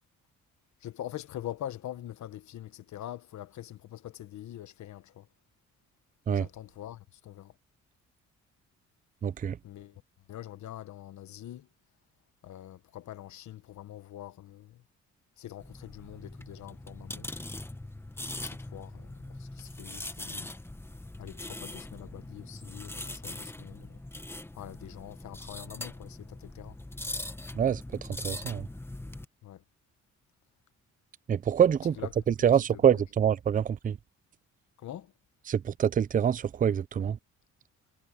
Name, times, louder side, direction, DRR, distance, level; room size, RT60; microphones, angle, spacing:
voice 1, 0.8-5.3 6.3-7.5 9.6-10.0 10.3-11.7 12.4-14.8 15.4-17.3 18.4-20.5 21.2-24.0 24.5-26.8 29.4-29.6 32.0-32.2 32.7-33.0 34.8-35.1, left 12 dB, 70° left, 1.4 m, -44 dB
voice 2, 9.2-9.6 27.5-27.8 28.2-28.7 31.3-32.0 32.3-34.0 35.5-37.2, right 8 dB, 30° right, 0.4 m, -25 dB
sound 1, 15.6-29.2, left 1 dB, 10° left, 1.1 m, -41 dB
cardioid pair, 90°, 30 cm